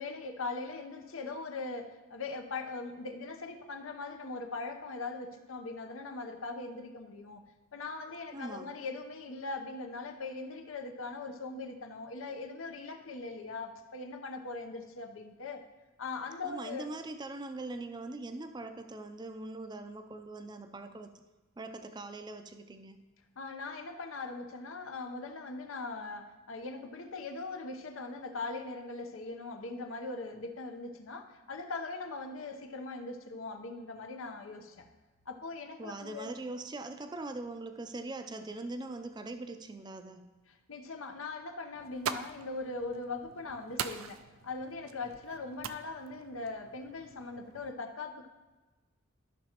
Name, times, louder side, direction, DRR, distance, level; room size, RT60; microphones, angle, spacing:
voice 1, 0.0-7.4 7.7-15.6 16.0-16.9 23.4-34.9 35.3-36.3 40.7-48.3, left 3 dB, 80° left, 5 dB, 0.8 m, -40 dB
voice 2, 8.3-8.7 16.4-21.1 21.6-23.0 35.8-40.2, right 2 dB, 20° right, 8 dB, 0.4 m, -42 dB
sound 1, 41.7-47.7, right 8 dB, 85° right, 0.4 m, -43 dB
13.5 x 6.0 x 2.9 m, 1.2 s
head